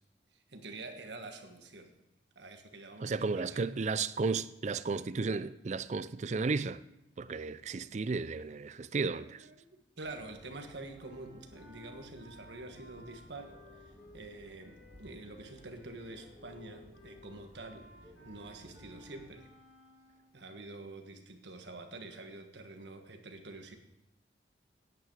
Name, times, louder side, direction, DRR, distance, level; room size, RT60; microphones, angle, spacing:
voice 1, 0.3-1.9 2.3-3.6 7.4-7.5 7.8-7.9 9.1-13.6 13.8-19.5 20.3-23.8, right 2 dB, 80° right, 1.4 m, -47 dB
voice 2, 3.0-6.8 7.2-9.4, right 4 dB, 40° right, 0.4 m, -33 dB
sound 1, 10.0-19.4, equal, 20° right, 2.8 m, -58 dB
sound 2, 10.9-20.5, left 2 dB, 80° left, 5.1 m, -57 dB
9.5 x 9.2 x 6.3 m
head